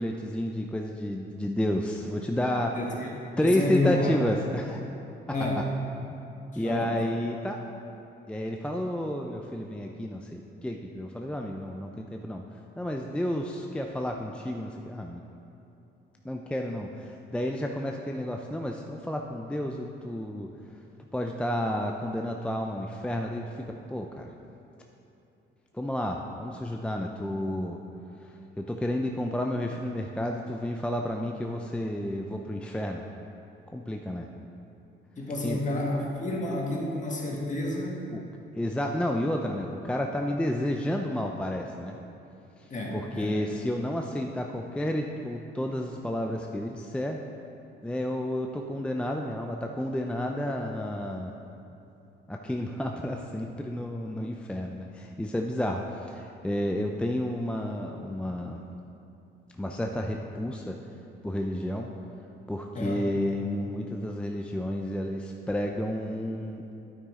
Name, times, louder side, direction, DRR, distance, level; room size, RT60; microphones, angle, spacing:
voice 1, 0.0-2.8 3.4-4.8 6.6-7.6 8.3-12.4 12.8-15.2 16.2-20.5 21.1-24.2 25.7-27.8 28.6-33.0 33.7-34.3 35.4-35.6 38.1-38.2 38.5-42.0 42.9-47.2 47.8-51.3 52.3-58.6 59.6-60.8 61.2-61.9 62.5-66.6, left 1 dB, 5° left, 2 dB, 0.5 m, -31 dB
voice 2, 2.7-4.1 5.3-5.7 6.5-7.0 35.2-38.0 42.7-43.4 62.7-63.0, left 2 dB, 40° left, -2 dB, 1.9 m, -30 dB
9.1 x 8.9 x 3.7 m, 3.0 s
cardioid pair, 90°, 20 cm